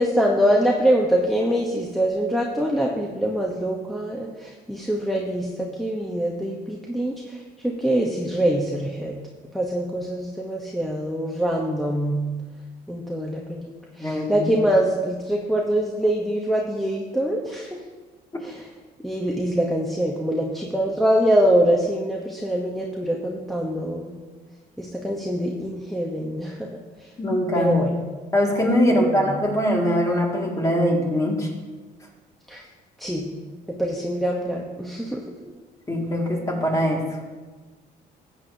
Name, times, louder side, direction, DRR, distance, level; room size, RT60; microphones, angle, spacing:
voice 1, 0.0-9.1 9.5-12.2 12.9-13.7 14.0-17.8 18.4-18.6 19.0-24.1 24.8-26.7 27.6-28.0 29.2-29.3 32.5-32.6 33.0-33.3 33.7-35.2, equal, ahead, -1 dB, 0.9 m, -24 dB
voice 2, 14.0-14.5 27.2-27.7 28.3-31.5 35.9-37.2, equal, 20° left, 0 dB, 2.1 m, -22 dB
14.0 x 8.4 x 2.7 m, 1.3 s
cardioid pair, 110°, 17 cm